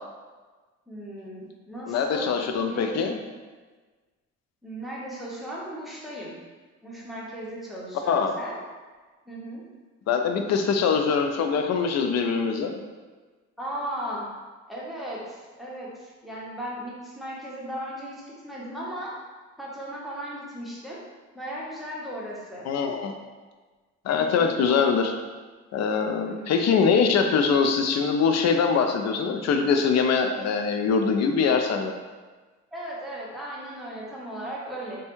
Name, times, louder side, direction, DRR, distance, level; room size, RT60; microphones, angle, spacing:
voice 1, 0.9-3.2 4.6-6.3 6.8-8.6 9.3-9.6 13.6-14.3 14.7-19.1 19.6-21.0 21.3-22.7 24.2-24.6 26.2-26.6 32.7-35.0, right 1 dB, ahead, -6 dB, 0.8 m, -36 dB
voice 2, 1.9-3.2 8.1-8.3 10.1-12.8 22.6-23.1 24.0-25.1 25.7-31.9, left 5 dB, 60° left, 5 dB, 0.4 m, -23 dB
3.1 x 2.2 x 3.0 m, 1.4 s
cardioid pair, 90°, 30 cm